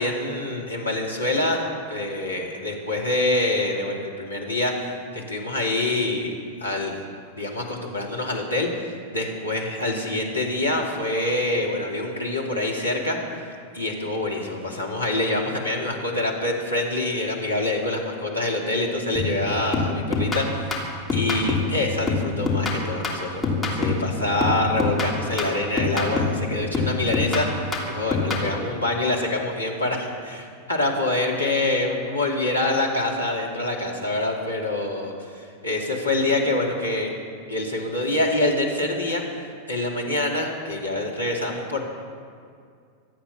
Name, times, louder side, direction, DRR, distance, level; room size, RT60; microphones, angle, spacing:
voice 1, 0.0-1.6 1.9-6.3 6.6-7.1 7.4-13.5 13.7-35.1 35.6-37.1 37.5-39.2 39.7-41.8, left 2 dB, 85° left, -2 dB, 2.6 m, -26 dB
sound 1, 19.2-19.4 19.7-21.8 22.1-24.1 24.4-26.4 26.7-28.5, left 3 dB, 10° left, 3.1 m, -25 dB
24.5 x 8.9 x 6.0 m, 2.3 s
figure-of-eight pair, 90°, 0 cm